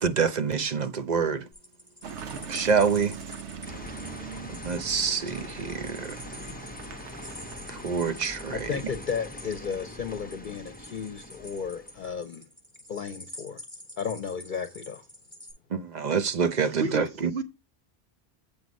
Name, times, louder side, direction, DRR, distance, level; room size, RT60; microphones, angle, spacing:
voice 1, 0.0-1.5 2.5-3.1 4.6-6.2 7.7-8.7 15.7-17.3, right 6 dB, 45° right, 0.8 m, -26 dB
sound 1, 1.5-15.5, left 1 dB, 15° right, 5.7 m, -47 dB
Car passing by / Engine, 2.0-8.6, right 6 dB, 85° right, 1.2 m, -42 dB
sound 2, 3.6-12.2, left 2 dB, 10° left, 0.7 m, -43 dB
voice 2, 8.5-12.4 12.9-13.6 14.0-15.0, left 6 dB, 50° left, 0.8 m, -34 dB
voice 3, 16.7-17.4, right 2 dB, 65° right, 1.6 m, -31 dB
7.8 x 5.2 x 5.2 m
omnidirectional pair, 1.1 m